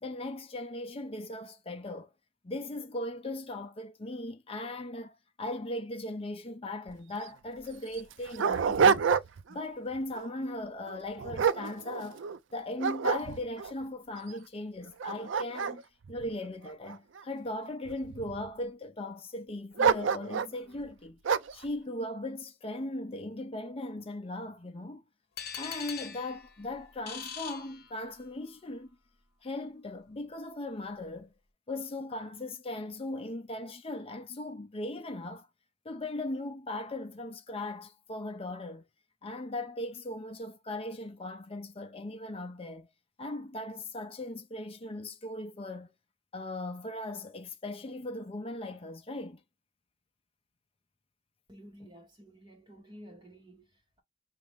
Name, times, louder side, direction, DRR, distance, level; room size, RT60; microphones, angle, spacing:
voice 1, 0.0-2.1 2.4-9.1 9.5-12.2 12.5-15.8 16.1-21.2 21.5-25.0 25.6-28.9 29.4-31.3 31.7-35.5 35.8-38.8 39.2-42.9 43.2-45.9 46.3-49.4, left 1 dB, 30° left, 0.5 m, -38 dB
Dog, 6.9-7.0 7.2-7.3 7.9-9.5 10.0-10.3 10.9-12.4 12.8-13.7 14.3-14.4 14.9-17.2 17.9-18.5 19.8-20.6 21.2-21.6, right 6 dB, 65° right, 0.4 m, -28 dB
sound 1, 25.4-28.4, left 7 dB, 50° left, 1.0 m, -42 dB
voice 2, 51.5-54.0, equal, 20° right, 1.3 m, -52 dB
5.7 x 2.5 x 3.4 m
head